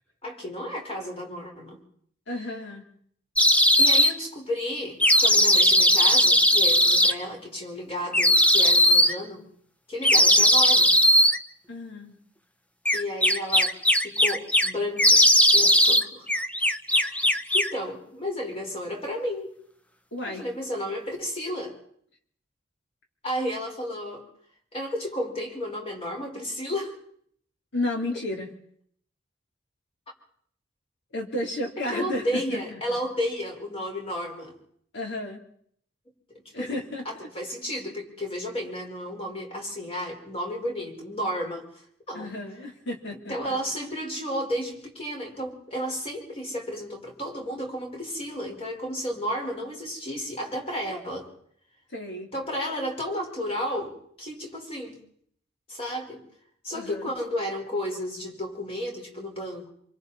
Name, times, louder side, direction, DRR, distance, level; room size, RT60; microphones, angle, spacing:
voice 1, 0.2-1.8 3.8-9.4 9.9-10.9 12.9-15.2 15.5-16.3 16.9-19.5 20.2-21.8 23.2-24.2 24.7-27.0 31.9-34.6 36.3-36.8 37.0-42.3 43.3-51.3 52.3-55.0 55.7-56.2 56.6-59.7, equal, 30° left, 0 dB, 4.9 m, -32 dB
voice 2, 2.3-2.9 11.7-12.2 20.1-20.5 27.7-28.5 31.1-33.0 34.9-35.4 36.5-37.1 42.1-43.6 51.9-52.3 56.7-57.1, left 1 dB, 60° left, 1 dB, 3.8 m, -32 dB
sound 1, 3.4-4.1 5.0-7.1 8.1-9.1 10.0-11.4 12.8-14.7 15.0-16.0 16.3-17.8, equal, 5° left, 0.8 m, -18 dB
26.0 x 24.0 x 4.3 m, 0.66 s
head